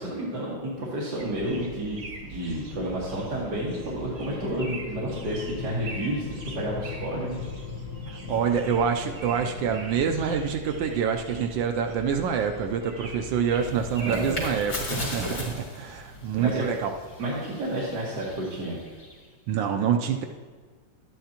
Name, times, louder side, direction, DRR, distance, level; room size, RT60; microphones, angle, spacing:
voice 1, 0.0-6.3 6.5-7.4 8.2-8.3 14.0-14.5 16.4-16.6 17.2-18.8, right 1 dB, 65° right, -6 dB, 2.1 m, -31 dB
sound 1, 1.2-15.6, right 3 dB, 45° right, 1.0 m, -42 dB
sound 2, 2.5-10.4, left 7 dB, 65° left, 1.0 m, -40 dB
voice 2, 8.1-16.9 19.5-20.2, right 7 dB, 80° right, 5 dB, 1.3 m, -26 dB
sound 3, 13.5-19.3, left 1 dB, 50° left, 2.8 m, -37 dB
11.5 x 9.3 x 2.9 m, 1.5 s
omnidirectional pair, 2.0 m